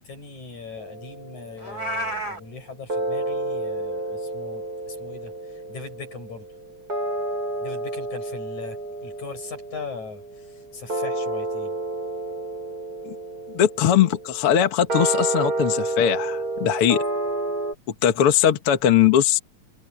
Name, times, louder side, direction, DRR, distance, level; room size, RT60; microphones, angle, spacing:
voice 1, 0.0-6.5 7.6-11.8, left 5 dB, 85° left, 9.4 m, -40 dB
sound 1, 0.8-2.1 2.9-17.7, right 2 dB, 30° right, 8.7 m, -30 dB
Meow, 1.6-2.4, right 1 dB, 30° left, 8.4 m, -30 dB
voice 2, 13.5-17.0 18.0-19.4, left 10 dB, 55° left, 2.1 m, -20 dB
omnidirectional pair, 3.3 m